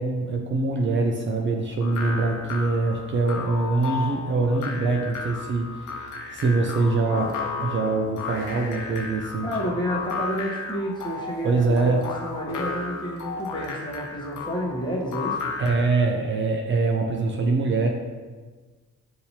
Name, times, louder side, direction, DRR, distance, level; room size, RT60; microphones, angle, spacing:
voice 1, 0.0-9.5 11.4-12.1 15.6-17.9, right 3 dB, 40° right, 2 dB, 0.5 m, -24 dB
sound 1, 1.8-16.0, left 4 dB, 80° left, 0.8 m, -34 dB
voice 2, 9.4-15.5, equal, 15° left, -3 dB, 1.1 m, -30 dB
6.4 x 2.9 x 2.8 m, 1.4 s
cardioid pair, 90°, 30 cm